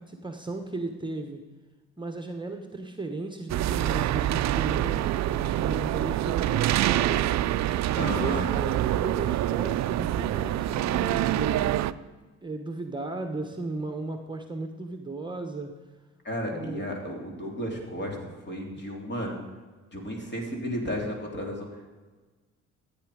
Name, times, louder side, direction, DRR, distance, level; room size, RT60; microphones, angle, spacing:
voice 1, 0.0-1.4 2.0-7.3 8.0-11.9 12.4-15.7 16.5-16.9, right 2 dB, 15° right, 5 dB, 1.1 m, -36 dB
sound 1, 3.5-11.9, right 13 dB, 65° right, 0.5 m, -26 dB
voice 2, 8.0-8.5 16.2-19.3 19.9-22.0, equal, 35° left, 0 dB, 3.5 m, -33 dB
14.0 x 9.1 x 5.0 m, 1.3 s
cardioid pair, 90°, 30 cm